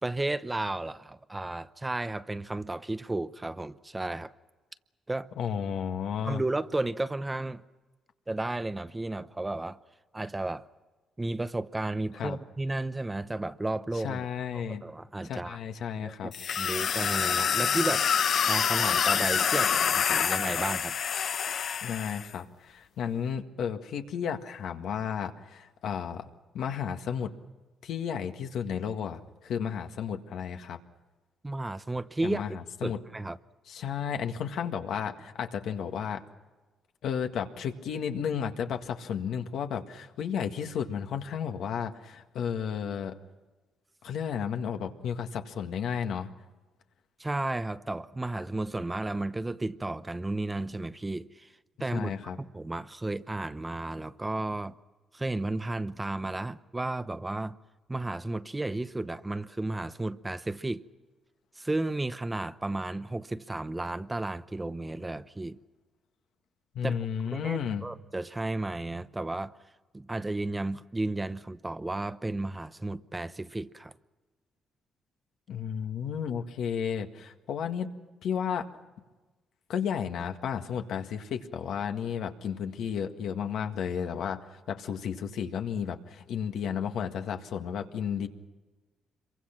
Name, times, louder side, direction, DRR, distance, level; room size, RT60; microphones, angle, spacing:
voice 1, 0.0-4.3 5.1-5.3 6.2-7.6 8.3-9.8 10.1-10.6 11.2-14.2 14.5-15.6 16.0-16.3 16.6-18.1 18.5-21.0 31.4-33.4 47.2-51.5 51.8-52.1 52.4-54.7 55.1-57.5 57.9-60.8 61.6-65.6 66.8-67.1 67.3-69.6 69.9-73.9, right 2 dB, 15° right, 0.8 m, -33 dB
voice 2, 5.4-6.4 12.1-12.4 13.9-14.8 15.2-16.3 21.8-26.3 26.5-27.3 27.8-30.8 32.2-33.0 33.7-36.2 37.0-43.2 44.0-46.3 51.9-52.4 66.7-67.9 75.5-77.9 78.2-78.7 79.7-88.3, left 7 dB, 75° left, 1.8 m, -33 dB
sound 1, 16.3-22.3, left 8 dB, 60° left, 0.7 m, -27 dB
26.5 x 23.5 x 6.0 m
cardioid pair, 90°, 0 cm